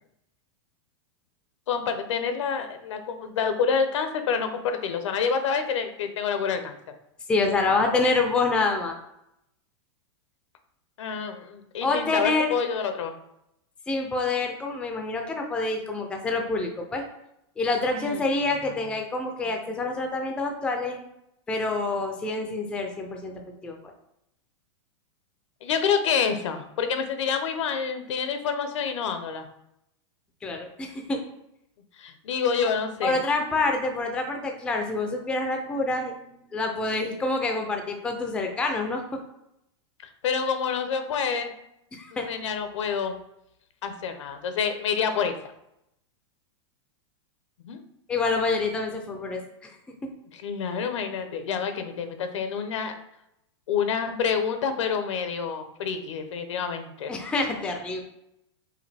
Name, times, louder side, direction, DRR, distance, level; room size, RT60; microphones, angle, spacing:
voice 1, 1.7-6.8 11.0-13.1 17.9-18.2 25.6-29.5 32.0-33.2 40.2-41.5 42.1-43.2 43.8-45.3 47.6-47.8 50.3-53.0 53.7-57.1, left 6 dB, 80° left, 8 dB, 0.7 m, -28 dB
voice 2, 7.3-9.0 11.8-12.5 13.9-17.0 17.6-21.1 21.5-23.9 30.4-31.2 32.6-32.7 33.0-39.2 41.9-42.3 48.1-49.7 50.0-50.1 57.1-58.0, left 3 dB, 5° left, 3 dB, 0.4 m, -27 dB
4.9 x 2.7 x 3.3 m, 0.81 s
supercardioid pair, 155°, 15 cm